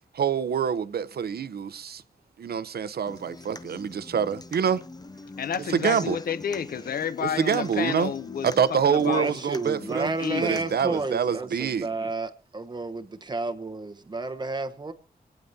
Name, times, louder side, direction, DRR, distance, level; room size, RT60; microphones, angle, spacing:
voice 1, 0.1-2.0 2.4-4.8 5.8-6.2 7.2-8.1 8.6-10.1 10.4-11.9, right 7 dB, 80° right, 0.7 m, -26 dB
Human voice / Acoustic guitar, 3.1-11.1, left 3 dB, 25° left, 0.6 m, -43 dB
voice 2, 5.4-9.4 10.2-10.6, left 8 dB, 70° left, 0.6 m, -30 dB
voice 3, 9.1-14.9, right 3 dB, 30° right, 0.9 m, -31 dB
27.5 x 9.3 x 2.7 m
wide cardioid pair, 165°, 16 cm